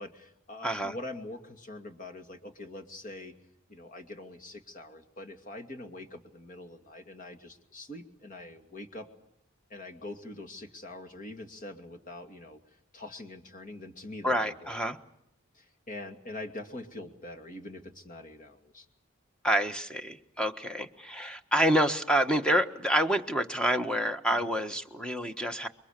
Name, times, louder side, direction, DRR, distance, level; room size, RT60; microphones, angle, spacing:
voice 1, 0.0-3.3 3.7-9.1 9.7-12.6 12.9-14.8 15.5-18.9 24.3-24.5, left 2 dB, 40° left, 6 dB, 2.5 m, -44 dB
voice 2, 0.6-0.9 14.2-15.0 19.4-25.7, equal, 5° left, 7 dB, 1.3 m, -28 dB
28.0 x 23.5 x 6.7 m, 0.78 s
head